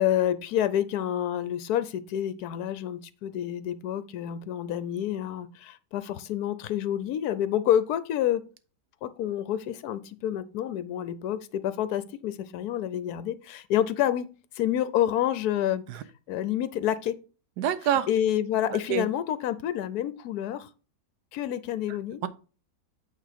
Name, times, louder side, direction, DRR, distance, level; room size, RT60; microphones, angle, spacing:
voice 1, 0.0-8.4 9.0-14.3 14.6-15.8 16.3-17.1 18.1-20.7 21.3-22.2, left 11 dB, 70° left, 1.1 m, -28 dB
voice 2, 17.6-18.1 18.7-19.0, right 10 dB, 80° right, 1.3 m, -26 dB
8.6 x 3.6 x 5.1 m
omnidirectional pair, 1.8 m